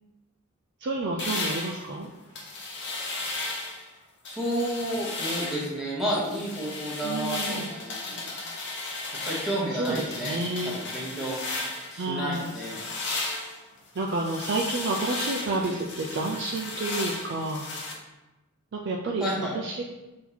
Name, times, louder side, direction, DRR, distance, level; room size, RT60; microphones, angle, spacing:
voice 1, 0.8-2.1 7.0-7.7 9.7-10.8 12.0-12.5 14.0-17.7 18.7-19.3 19.5-19.8, right 2 dB, 55° right, -1 dB, 0.4 m, -30 dB
sound 1, 1.2-3.9 4.3-5.7 6.1-12.0 12.3-17.9, left 2 dB, 55° left, 0.9 m, -35 dB
voice 2, 4.3-8.2 9.2-11.4 11.9-12.9 19.2-19.5, right 1 dB, ahead, -6 dB, 0.9 m, -31 dB
4.3 x 2.8 x 3.9 m, 1.0 s
head